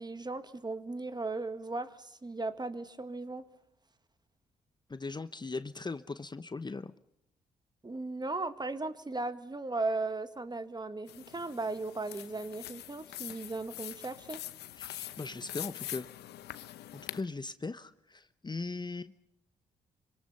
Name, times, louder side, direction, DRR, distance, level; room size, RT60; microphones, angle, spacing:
voice 1, 0.0-3.5 7.8-14.4, right 3 dB, 25° right, 11 dB, 1.9 m, -37 dB
voice 2, 4.9-6.9 14.8-16.1 17.1-19.1, left 3 dB, 25° left, 13 dB, 0.9 m, -39 dB
sound 1, 11.1-17.2, left 13 dB, 70° left, 0.9 m, -44 dB
26.5 x 25.5 x 5.6 m, 0.76 s
hypercardioid pair, 40°, 18 cm